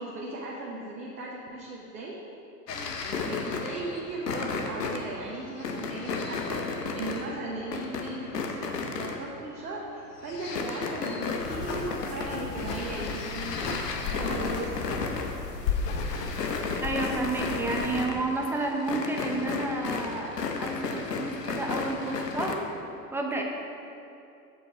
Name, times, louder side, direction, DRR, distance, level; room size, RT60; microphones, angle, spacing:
voice 1, 0.0-2.2 3.3-14.7 21.7-22.3, right 2 dB, 80° right, -3 dB, 1.1 m, -37 dB
sound 1, 2.7-9.6 10.0-22.5, left 4 dB, 85° left, 0.8 m, -34 dB
sound 2, 11.4-18.1, left 4 dB, 40° left, 1.0 m, -34 dB
voice 2, 16.8-22.7 23.1-23.4, right 2 dB, 5° right, 1 dB, 0.6 m, -31 dB
7.0 x 5.4 x 4.7 m, 2.7 s
figure-of-eight pair, 90°, 47 cm